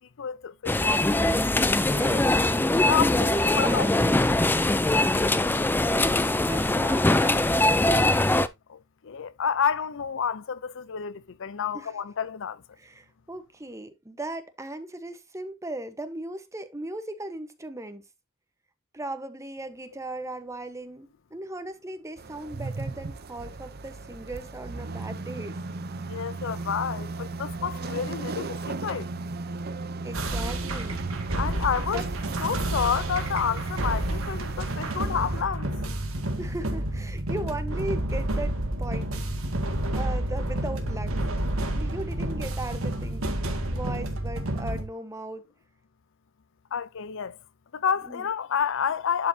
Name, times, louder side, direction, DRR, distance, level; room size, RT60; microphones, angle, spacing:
voice 1, 0.2-1.0 2.9-3.3 3.6-3.9 8.7-12.6 26.0-29.1 31.3-32.0 32.4-35.7 46.7-47.4 47.7-49.3, left 7 dB, 65° left, 0.5 m, -29 dB
sound 1, 0.7-8.5, left 1 dB, 10° left, 0.4 m, -22 dB
voice 2, 1.5-2.3 3.2-4.2 6.4-8.0 11.7-11.9 12.8-18.0 18.9-25.6 30.0-31.0 31.9-32.0 36.4-39.1 39.9-41.2 41.6-45.4 48.0-48.3, right 2 dB, 15° right, 1.1 m, -37 dB
sound 2, 22.2-35.4, right 3 dB, 50° right, 0.7 m, -35 dB
sound 3, 30.1-44.8, right 1 dB, 80° right, 2.0 m, -30 dB
11.5 x 5.2 x 2.8 m
head